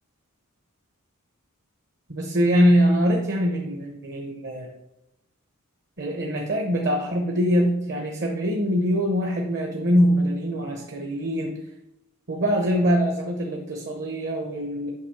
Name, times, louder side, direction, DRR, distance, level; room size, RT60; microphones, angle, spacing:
voice 1, 2.1-4.7 6.0-11.6 12.3-14.9, equal, 50° right, 2 dB, 0.9 m, -23 dB
8.3 x 3.1 x 6.4 m, 0.89 s
head